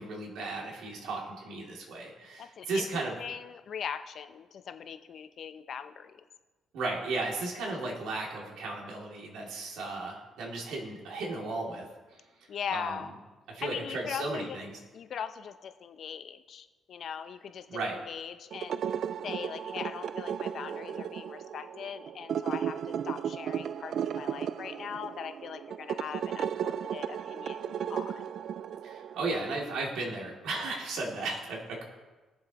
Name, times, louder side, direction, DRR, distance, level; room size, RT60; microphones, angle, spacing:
voice 1, 0.0-3.2 6.7-11.8 12.1-12.2 12.7-13.0 13.5-14.8 17.7-18.0 28.8-31.8, right 3 dB, 85° right, -2 dB, 2.8 m, -35 dB
voice 2, 2.4-2.9 3.2-6.2 12.5-13.1 13.6-14.6 14.9-18.8 19.2-28.2, left 7 dB, 60° left, 9 dB, 0.8 m, -40 dB
sound 1, 18.5-29.3, right 8 dB, 65° right, 0.3 m, -35 dB
19.5 x 7.3 x 3.1 m, 1.2 s
cardioid pair, 90°, 0 cm